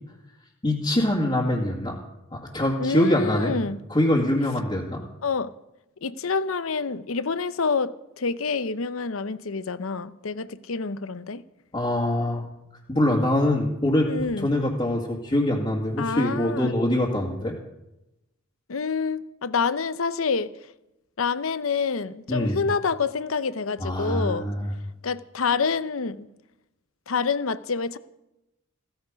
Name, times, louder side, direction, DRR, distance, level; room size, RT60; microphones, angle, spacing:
voice 1, 0.6-2.0 2.3-3.5 3.9-5.0 11.7-12.5 12.9-14.1 14.4-17.5 22.3-22.6 23.8-24.7, left 1 dB, 25° left, 2.0 m, -24 dB
voice 2, 2.8-3.8 5.2-5.5 6.0-11.4 14.1-14.5 16.0-16.7 18.7-20.5 21.2-24.5 25.0-26.3 27.1-28.0, left 5 dB, 75° left, 0.8 m, -27 dB
16.0 x 14.5 x 5.2 m
head